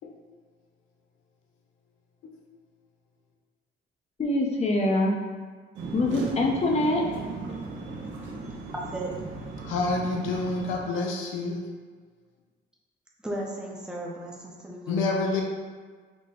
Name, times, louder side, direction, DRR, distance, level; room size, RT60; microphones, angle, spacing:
voice 1, 4.2-5.1 5.9-7.0, left 2 dB, 35° left, -1 dB, 0.6 m, -24 dB
sound 1, 5.7-10.8, right 3 dB, 75° right, 0.7 m, -37 dB
voice 2, 8.7-9.1 13.2-15.1, right 1 dB, 5° right, -3 dB, 0.7 m, -35 dB
voice 3, 9.6-11.6 14.9-15.4, left 3 dB, 90° left, 0 dB, 0.5 m, -27 dB
4.0 x 2.1 x 3.5 m, 1.5 s
cardioid pair, 90°, 20 cm